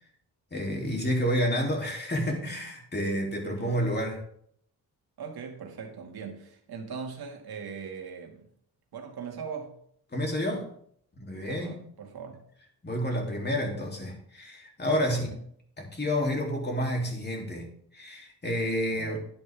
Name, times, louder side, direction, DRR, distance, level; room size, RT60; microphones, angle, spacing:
voice 1, 0.5-4.2 10.1-10.7 11.2-11.8 12.8-15.4 15.8-19.2, equal, 25° left, 3.4 m, -29 dB
voice 2, 3.4-3.8 5.2-8.5 8.9-9.8 11.4-12.4 15.1-15.2 18.9-19.2, right 6 dB, 75° right, 2.5 m, -40 dB
10.5 x 10.5 x 3.7 m
cardioid pair, 95°, 37 cm